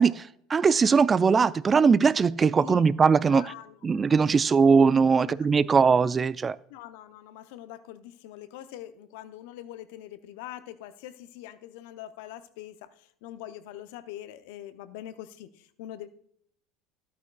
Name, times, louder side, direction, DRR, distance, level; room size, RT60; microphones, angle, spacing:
voice 1, 0.0-3.5 3.8-6.6, right 5 dB, 30° right, 18 dB, 0.3 m, -21 dB
voice 2, 3.3-3.8 4.4-4.6 5.2-5.4 6.7-16.1, left 12 dB, 75° left, 13 dB, 0.6 m, -43 dB
12.5 x 8.4 x 2.2 m, 0.66 s
hypercardioid pair, 85°, 0 cm